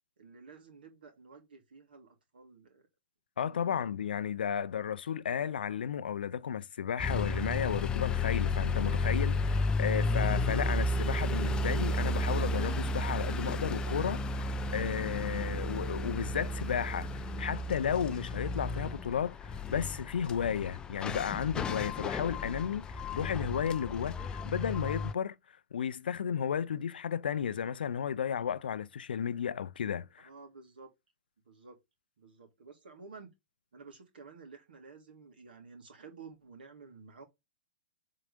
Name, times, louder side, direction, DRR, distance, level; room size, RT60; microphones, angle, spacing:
voice 1, 0.2-2.8 3.4-3.8 30.2-30.9 31.4-31.8 32.2-33.3 33.7-37.2, right 4 dB, 65° right, 3.1 m, -52 dB
voice 2, 3.4-25.4 25.7-30.3, left 8 dB, 65° left, 0.6 m, -33 dB
sound 1, 7.0-25.1, left 2 dB, 15° left, 0.6 m, -33 dB
7.6 x 3.9 x 5.1 m
figure-of-eight pair, 110°, 6 cm